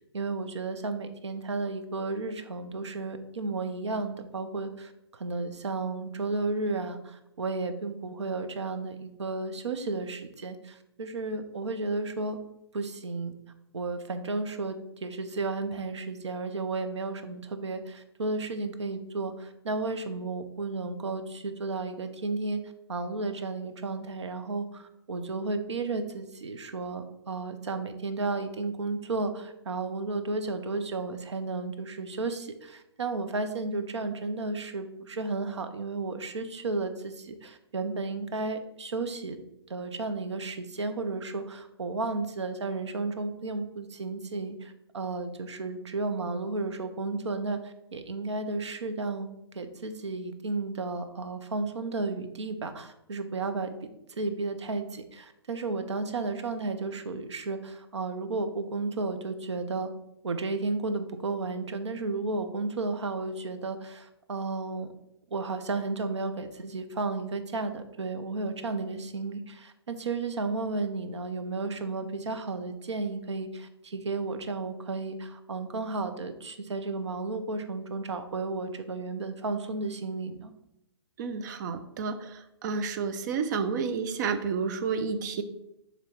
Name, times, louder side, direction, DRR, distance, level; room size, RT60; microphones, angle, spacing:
voice 1, 0.1-12.4 12.7-13.3 13.7-22.6 22.9-39.4 39.7-49.3 49.5-53.7 54.2-59.9 60.2-64.9 65.3-80.5, right 3 dB, 85° right, 8 dB, 0.7 m, -33 dB
voice 2, 81.2-82.2 82.6-85.4, right 5 dB, 40° right, 9 dB, 0.6 m, -30 dB
6.8 x 3.0 x 4.5 m, 0.85 s
hypercardioid pair, 135°, 14 cm